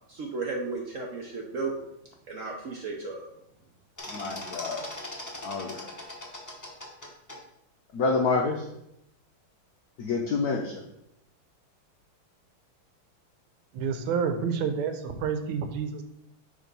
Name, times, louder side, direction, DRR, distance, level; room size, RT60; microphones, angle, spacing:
voice 1, 0.1-1.7 2.3-3.2, right 3 dB, 65° right, 0 dB, 0.7 m, -34 dB
sound 1, 4.0-7.4, left 1 dB, 20° left, 0.4 m, -39 dB
voice 2, 4.1-4.8 5.4-5.8 7.9-8.6 10.0-10.7, left 4 dB, 75° left, 1 dB, 0.8 m, -27 dB
voice 3, 13.7-16.0, right 6 dB, 85° right, 8 dB, 1.6 m, -29 dB
6.5 x 3.5 x 5.3 m, 0.81 s
omnidirectional pair, 2.3 m